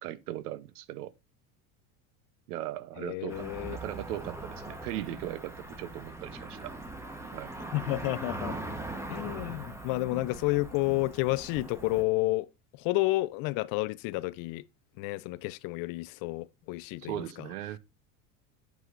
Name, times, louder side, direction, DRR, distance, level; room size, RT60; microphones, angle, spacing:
voice 1, 0.0-1.1 2.5-6.8 7.3-7.5 17.0-17.8, right 13 dB, 85° right, 0.8 m, -38 dB
voice 2, 3.0-3.8 7.7-8.6 9.1-12.5 12.8-14.7 15.0-17.3, left 21 dB, 50° left, 0.5 m, -30 dB
Cricket / Motor vehicle (road), 3.3-12.0, right 2 dB, 5° right, 1.0 m, -41 dB
8.1 x 7.6 x 2.5 m
supercardioid pair, 110°, 44 cm